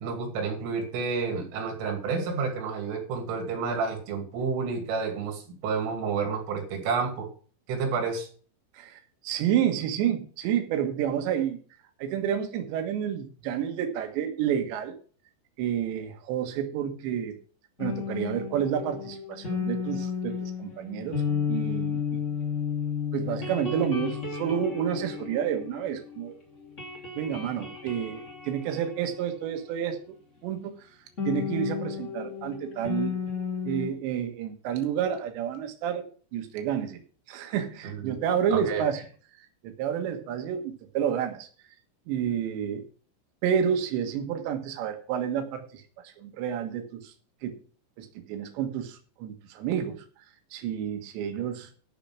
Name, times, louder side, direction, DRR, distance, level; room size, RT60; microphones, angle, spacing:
voice 1, 0.0-7.3 7.7-8.3 37.8-38.2 38.5-38.8, right 5 dB, 90° right, 4 dB, 5.2 m, -30 dB
voice 2, 8.7-11.6 12.0-15.0 15.6-17.4 17.8-21.2 21.5-22.2 23.1-26.4 27.2-30.0 30.4-30.9 31.3-33.2 33.7-36.0 36.3-37.0 37.3-39.0 39.6-41.5 42.1-42.8 43.4-47.1 47.4-47.6 48.0-50.1 50.5-51.7, right 9 dB, 75° right, 5 dB, 3.5 m, -30 dB
sound 1, 17.8-26.3 26.6-30.0 31.2-33.9, left 6 dB, 20° left, 2.5 m, -33 dB
12.0 x 7.0 x 5.9 m, 0.41 s
omnidirectional pair, 5.5 m